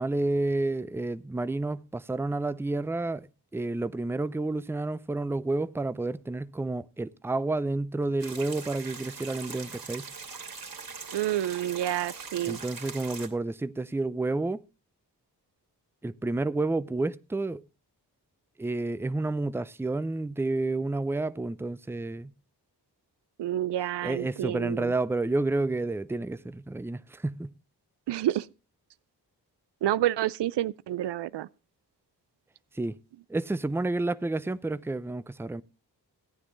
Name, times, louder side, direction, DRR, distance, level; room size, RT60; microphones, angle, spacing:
voice 1, 0.0-3.3 3.5-10.1 12.5-14.6 16.0-17.6 18.6-22.3 24.0-27.5 32.7-33.0 33.3-35.6, right 2 dB, 5° right, 0.5 m, -30 dB
sound 1, 8.2-13.3, right 5 dB, 55° right, 2.9 m, -41 dB
voice 2, 11.1-12.6 23.4-24.9 28.1-28.5 29.8-31.5, right 13 dB, 80° right, 0.5 m, -29 dB
14.5 x 9.7 x 3.9 m
cardioid pair, 45°, 41 cm